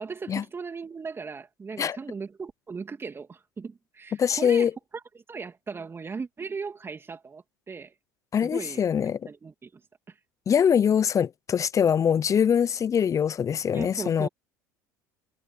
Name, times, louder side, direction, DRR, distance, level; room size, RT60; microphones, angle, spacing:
voice 1, 0.0-7.9 8.4-8.8 9.2-9.8 10.1-10.2 13.7-14.3, right 5 dB, 25° right, 2.9 m, -38 dB
voice 2, 4.1-4.7 8.3-9.2 10.5-14.3, left 8 dB, 30° left, 0.8 m, -23 dB
hypercardioid pair, 70°, 10 cm